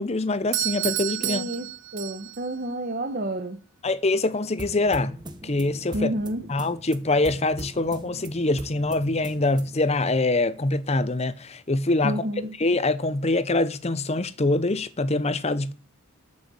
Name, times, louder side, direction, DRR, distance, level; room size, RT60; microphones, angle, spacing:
voice 1, 0.0-1.4 3.8-6.1 6.5-12.3 12.6-15.7, left 2 dB, 30° left, 0.7 m, -24 dB
Doorbell, 0.5-2.5, right 16 dB, 55° right, 0.6 m, -30 dB
voice 2, 1.2-3.6 5.9-6.4 12.0-12.5, right 1 dB, 40° right, 1.1 m, -30 dB
sound 1, 4.6-9.9, right 1 dB, 20° right, 1.1 m, -41 dB
12.5 x 6.4 x 7.0 m
head